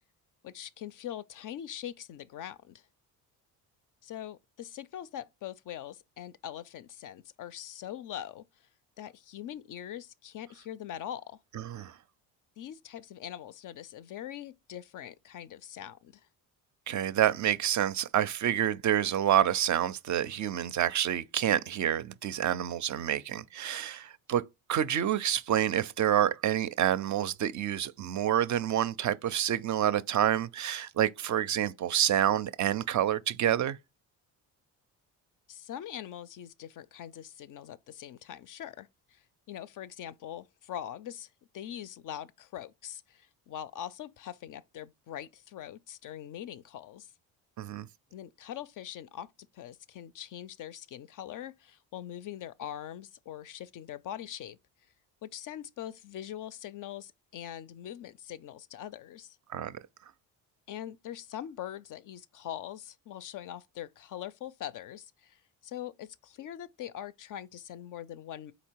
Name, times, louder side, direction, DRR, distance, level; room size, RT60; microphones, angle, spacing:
voice 1, 0.4-2.8 4.0-8.7 9.0-11.4 12.6-16.3 35.5-47.1 48.1-54.6 55.2-59.4 60.7-68.5, left 11 dB, 50° left, 0.4 m, -42 dB
voice 2, 16.9-24.4 24.7-33.8 47.6-47.9 59.5-59.7, right 11 dB, 45° right, 0.5 m, -28 dB
4.0 x 2.8 x 4.5 m
supercardioid pair, 60°, 43 cm